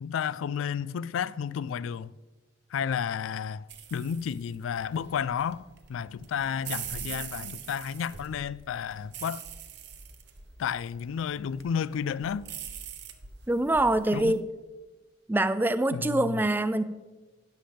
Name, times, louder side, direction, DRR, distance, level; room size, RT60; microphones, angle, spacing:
voice 1, 0.0-2.1 2.7-3.6 3.9-9.4 10.6-12.5 14.1-14.4 15.9-16.4, left 7 dB, 85° left, 0.3 m, -32 dB
sound 1, 3.7-14.4, right 8 dB, 60° right, 0.9 m, -43 dB
voice 2, 13.5-14.4 15.3-16.8, right 1 dB, 10° right, 0.3 m, -24 dB
13.0 x 10.5 x 3.4 m
head